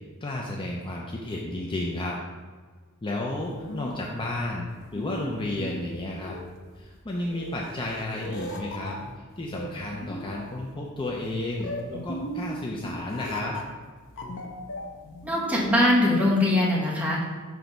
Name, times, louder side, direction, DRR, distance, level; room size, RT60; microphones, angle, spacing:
voice 1, 0.2-2.2 3.0-6.4 6.7-9.0 9.4-13.6, left 1 dB, 25° left, -2 dB, 0.5 m, -32 dB
sound 1, 3.3-15.8, left 1 dB, 60° left, 0.8 m, -38 dB
voice 2, 15.2-17.2, left 1 dB, 5° right, -6 dB, 1.4 m, -22 dB
6.0 x 3.4 x 5.2 m, 1.5 s
head